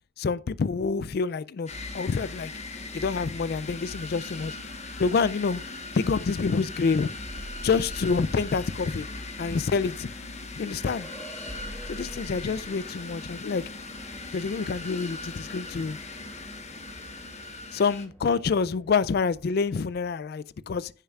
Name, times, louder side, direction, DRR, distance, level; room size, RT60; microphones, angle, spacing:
voice 1, 0.2-1.7 1.9-2.5 2.9-4.6 5.0-5.6 6.0-7.1 7.6-9.1 9.4-10.1 10.6-11.1 11.9-13.6 14.3-16.0 17.7-20.9, left 5 dB, 50° left, 0.3 m, -27 dB
sound 1, 1.7-18.1, left 2 dB, 35° left, 1.2 m, -39 dB
sound 2, 7.3-8.6 10.4-10.5 11.5-12.8 14.6-14.7 15.2-15.3, equal, 15° right, 0.7 m, -42 dB
sound 3, 11.0-20.1, equal, 15° left, 2.6 m, -52 dB
15.0 x 6.7 x 2.4 m
head